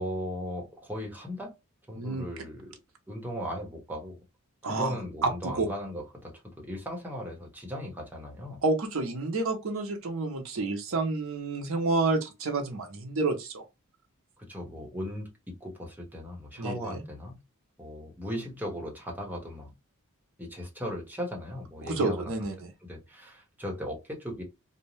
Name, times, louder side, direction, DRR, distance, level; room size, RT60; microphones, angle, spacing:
voice 1, 0.0-1.5 1.9-2.8 3.1-4.2 4.6-8.6 14.5-15.3 15.6-17.4 17.8-19.7 20.4-22.3 22.9-24.4, equal, 10° right, 0.9 m, -37 dB
voice 2, 2.0-2.3 4.6-5.0 5.2-5.7 8.6-13.6 16.6-17.0 21.8-22.7, right 3 dB, 65° right, 0.6 m, -29 dB
2.6 x 2.1 x 3.0 m
head